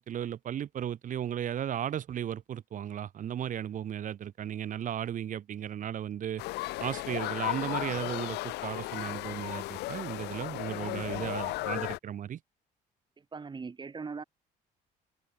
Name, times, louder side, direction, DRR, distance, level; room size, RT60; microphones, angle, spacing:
voice 1, 0.0-6.4 6.8-12.4, right 10 dB, 50° right, 1.5 m, -35 dB
sound 1, 6.4-12.0, left 20 dB, 80° left, 0.5 m, -35 dB
voice 2, 13.2-14.2, right 5 dB, 25° right, 4.6 m, -40 dB
cardioid pair, 110°, 17 cm